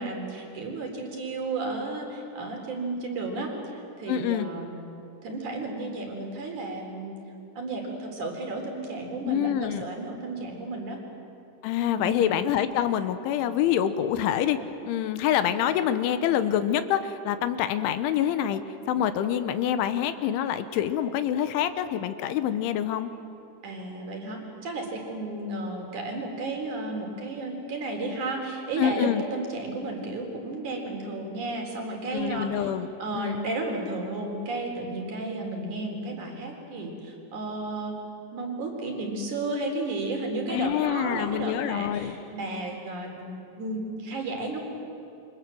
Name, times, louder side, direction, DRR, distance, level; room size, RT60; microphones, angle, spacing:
voice 1, 0.0-4.7 5.2-7.2 7.5-11.0 11.9-12.3 23.6-32.7 33.0-37.9 38.3-44.6, right 2 dB, 40° right, 1 dB, 4.9 m, -33 dB
voice 2, 4.1-4.5 9.2-9.9 11.6-14.6 14.9-18.6 18.9-23.1 28.8-29.2 32.1-32.9 33.1-33.4 40.5-42.1, left 10 dB, 80° left, 11 dB, 3.4 m, -26 dB
28.5 x 24.5 x 7.7 m, 2.8 s
omnidirectional pair, 5.5 m